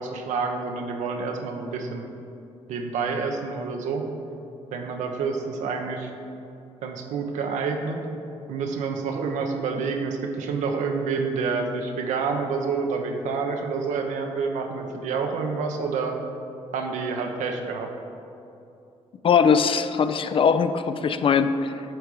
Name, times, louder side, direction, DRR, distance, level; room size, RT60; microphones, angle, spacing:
voice 1, 0.0-2.0 2.7-4.0 4.7-6.1 6.8-8.0 8.5-16.2 16.7-17.9, right 4 dB, 80° right, 3 dB, 0.7 m, -28 dB
voice 2, 19.2-21.8, left 6 dB, 45° left, 10 dB, 0.4 m, -21 dB
8.9 x 3.5 x 4.7 m, 2.7 s
supercardioid pair, 65°, 12 cm